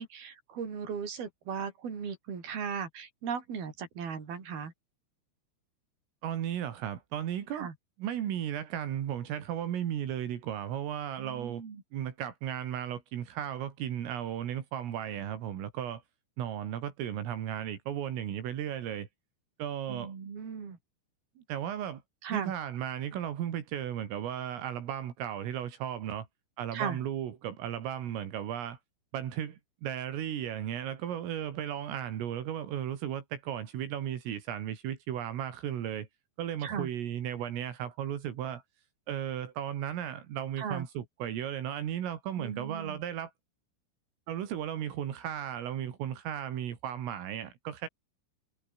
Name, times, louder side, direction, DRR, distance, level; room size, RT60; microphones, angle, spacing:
voice 1, 0.0-4.7 7.5-7.7 11.2-11.8 19.9-20.8 22.2-22.5 26.7-27.0 36.6-36.9 40.6-40.9 42.4-43.0, right 6 dB, 50° right, 6.4 m, -37 dB
voice 2, 6.2-7.7 8.0-11.6 11.9-16.0 16.4-19.1 19.6-20.1 21.4-22.0 22.3-26.3 26.6-28.8 29.1-36.1 36.4-38.6 39.1-43.3 44.3-47.9, right 10 dB, 80° right, 5.3 m, -35 dB
omnidirectional pair, 5.9 m